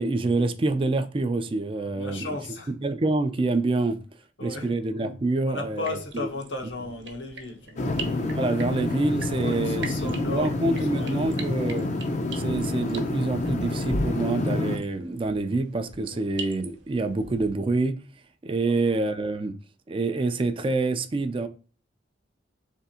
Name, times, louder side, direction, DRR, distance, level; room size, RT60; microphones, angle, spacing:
voice 1, 0.0-2.4 2.7-4.0 4.4-6.3 8.2-11.9 12.4-18.0 18.4-19.6 19.9-21.5, right 3 dB, 30° right, 0.4 m, -26 dB
voice 2, 1.9-2.7 4.4-4.7 5.5-7.9 9.4-11.3 18.6-18.7, left 2 dB, 75° left, 1.2 m, -35 dB
sound 1, 5.7-17.5, right 4 dB, 70° right, 0.9 m, -44 dB
sound 2, 7.8-14.8, left 2 dB, 40° left, 0.6 m, -28 dB
3.5 x 3.3 x 4.1 m
head